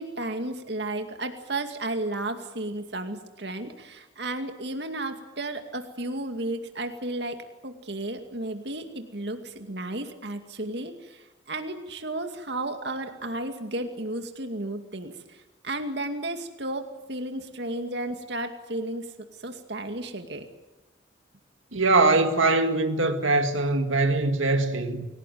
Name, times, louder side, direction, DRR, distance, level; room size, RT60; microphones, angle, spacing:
voice 1, 0.0-7.4 7.6-15.4 15.6-19.0 19.4-20.5, right 2 dB, 60° right, 2.4 m, -33 dB
voice 2, 21.7-25.1, right 3 dB, 85° right, 2.1 m, -22 dB
27.5 x 18.0 x 9.3 m
head